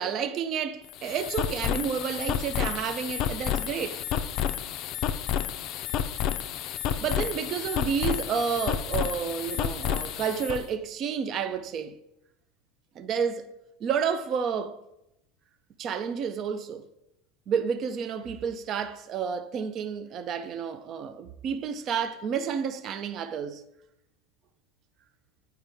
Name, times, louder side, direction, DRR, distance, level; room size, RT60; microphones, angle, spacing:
voice 1, 0.0-4.0 7.0-12.0 13.0-13.5 13.8-14.8 15.8-16.9 17.5-23.6, right 7 dB, 45° right, 0.5 m, -30 dB
sound 1, 0.8-10.6, left 10 dB, 50° left, 0.4 m, -30 dB
8.8 x 4.6 x 3.4 m
supercardioid pair, 115°, 0 cm